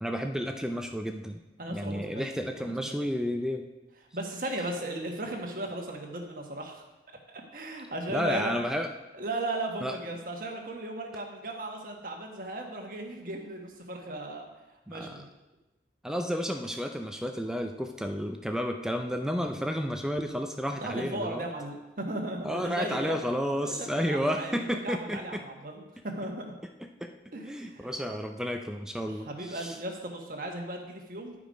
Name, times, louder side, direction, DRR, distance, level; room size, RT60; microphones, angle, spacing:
voice 1, 0.0-1.4 1.7-3.6 8.1-8.9 9.8-10.0 14.9-15.2 16.0-21.5 22.4-25.4 26.8-27.1 27.4-29.8, equal, 5° right, 5 dB, 0.4 m, -31 dB
voice 2, 1.6-2.3 2.6-2.9 4.1-6.8 7.3-8.5 9.1-14.5 14.9-15.3 20.8-23.2 23.6-26.4 27.3-27.9 29.0-31.3, right 1 dB, 50° right, 2 dB, 1.3 m, -36 dB
11.0 x 5.0 x 5.2 m, 1.0 s
head